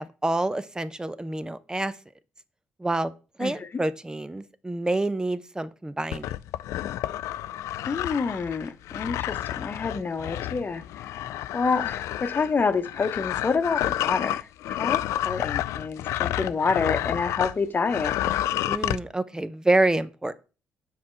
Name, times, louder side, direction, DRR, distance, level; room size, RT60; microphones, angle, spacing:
voice 1, 0.0-1.9 2.8-3.1 3.4-6.3 18.7-20.3, right 2 dB, 15° right, 0.7 m, -27 dB
sound 1, 6.1-17.6 17.9-19.0, left 13 dB, 65° left, 0.3 m, -30 dB
voice 2, 7.8-11.1 11.5-18.1, left 4 dB, 35° left, 1.0 m, -28 dB
7.4 x 4.3 x 4.6 m
figure-of-eight pair, 40°, 6 cm